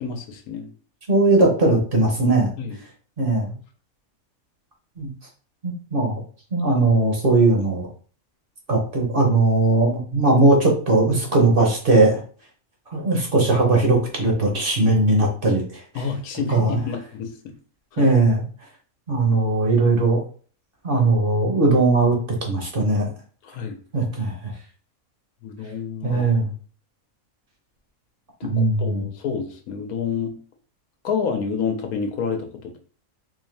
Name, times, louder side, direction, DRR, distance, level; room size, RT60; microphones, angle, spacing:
voice 1, 0.0-0.7 2.6-2.8 15.9-17.3 17.9-18.1 23.4-23.8 25.4-26.5 28.4-30.4 31.0-32.8, left 6 dB, 90° left, 5 dB, 1.2 m, -29 dB
voice 2, 1.1-2.5 3.2-3.5 5.0-5.1 5.6-6.2 6.5-7.9 8.7-12.2 12.9-16.0 16.5-16.8 18.0-18.4 19.1-20.2 20.8-22.2 22.5-23.1 23.9-24.5 26.0-26.5 28.5-29.0, right 2 dB, 45° right, 0 dB, 0.9 m, -19 dB
3.9 x 2.7 x 3.2 m, 0.42 s
omnidirectional pair, 1.5 m